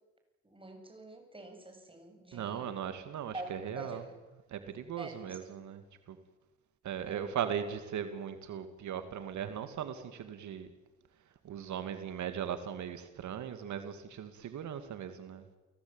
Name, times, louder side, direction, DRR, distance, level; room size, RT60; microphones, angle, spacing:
voice 1, 0.4-2.7 3.3-4.1 4.6-4.7 5.0-5.5 7.1-7.3, right 2 dB, 15° right, 5 dB, 7.6 m, -46 dB
voice 2, 2.3-4.0 4.5-5.8 6.1-6.2 6.8-10.7 11.4-15.4, right 8 dB, 70° right, 9 dB, 2.5 m, -38 dB
30.0 x 17.5 x 9.1 m, 1.1 s
cardioid pair, 90°, 30 cm